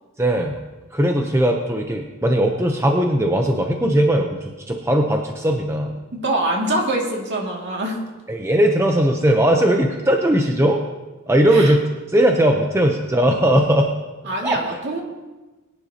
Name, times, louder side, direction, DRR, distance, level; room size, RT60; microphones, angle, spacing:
voice 1, 0.2-0.6 0.9-5.9 8.3-10.8 11.3-11.8 12.1-13.9 14.4-14.6, right 1 dB, 15° right, 3 dB, 0.7 m, -18 dB
voice 2, 6.1-8.0 11.5-11.7 14.3-15.0, right 1 dB, 55° right, -1 dB, 2.3 m, -24 dB
21.0 x 10.0 x 2.9 m, 1.2 s
head